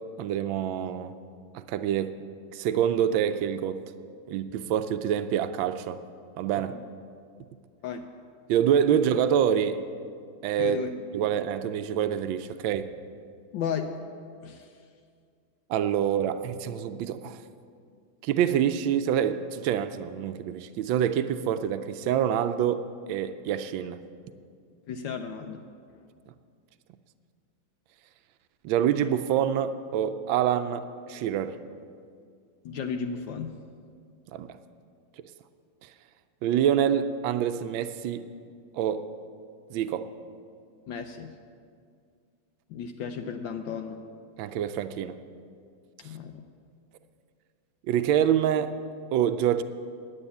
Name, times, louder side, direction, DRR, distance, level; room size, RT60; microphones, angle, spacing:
voice 1, 0.2-1.1 1.5-2.2 2.5-3.8 4.3-6.0 6.4-6.8 8.5-9.8 10.4-10.8 11.1-12.9 15.7-17.4 18.2-24.0 28.6-31.6 34.3-34.5 36.4-38.2 38.7-39.0 39.7-40.1 44.4-45.2 47.9-48.7 49.1-49.6, right 9 dB, 80° right, 10 dB, 1.3 m, -26 dB
voice 2, 10.6-10.9 13.5-14.0 14.4-14.7 24.9-25.6 25.9-26.0 32.6-33.6 40.9-41.4 42.7-44.0 46.0-46.4, left 6 dB, 75° left, 4 dB, 1.3 m, -34 dB
10.0 x 9.9 x 8.3 m, 2.2 s
omnidirectional pair, 2.2 m